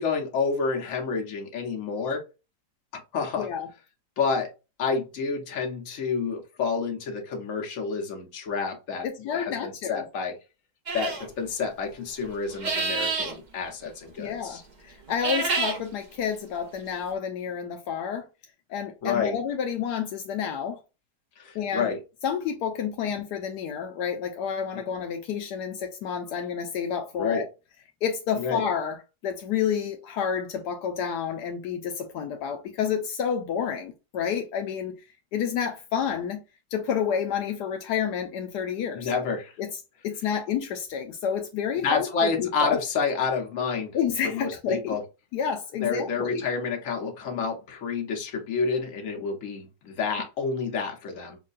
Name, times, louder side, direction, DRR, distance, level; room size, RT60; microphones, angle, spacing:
voice 1, 0.0-2.2 3.1-3.5 4.2-4.5 4.8-9.0 9.3-10.3 10.9-14.6 19.0-19.4 21.4-22.0 24.7-24.8 27.1-27.4 28.3-28.6 38.9-39.6 41.8-44.0 44.3-45.0 45.7-51.4, left 5 dB, 55° left, 1.3 m, -29 dB
voice 2, 3.4-3.7 9.0-10.1 14.2-18.3 18.7-20.8 21.5-21.9 22.2-27.5 28.0-29.0 29.2-35.0 35.3-36.4 36.7-39.1 39.6-39.7 40.0-42.8 43.9-45.0 45.3-46.4, left 7 dB, 80° left, 1.2 m, -29 dB
sound 1, 10.9-11.3 12.5-13.3 15.1-15.8, right 4 dB, 50° right, 0.5 m, -28 dB
5.5 x 2.2 x 2.5 m
omnidirectional pair, 1.8 m